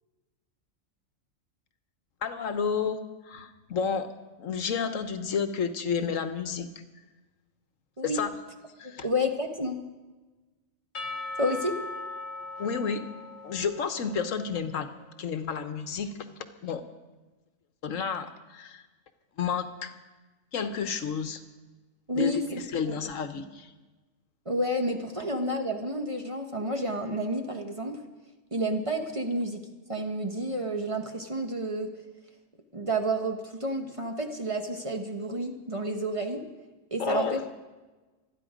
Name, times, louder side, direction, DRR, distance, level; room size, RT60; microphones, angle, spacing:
voice 1, 2.2-3.0 3.2-4.1 4.4-6.7 8.0-8.3 8.8-9.1 12.6-13.0 13.4-14.9 15.2-16.1 16.6-16.8 17.8-18.8 19.4-19.9 20.5-21.4 22.1-23.7 37.0-37.4, left 6 dB, 75° left, 9 dB, 1.4 m, -31 dB
voice 2, 8.8-9.8 11.4-11.8 22.1-23.0 24.4-28.0 28.5-29.6 29.9-31.9 32.7-36.4 36.9-37.4, equal, 25° right, 4 dB, 1.2 m, -30 dB
Percussion / Church bell, 10.9-14.8, left 2 dB, 30° left, 0.9 m, -39 dB
25.5 x 9.8 x 5.1 m, 1.2 s
omnidirectional pair, 1.4 m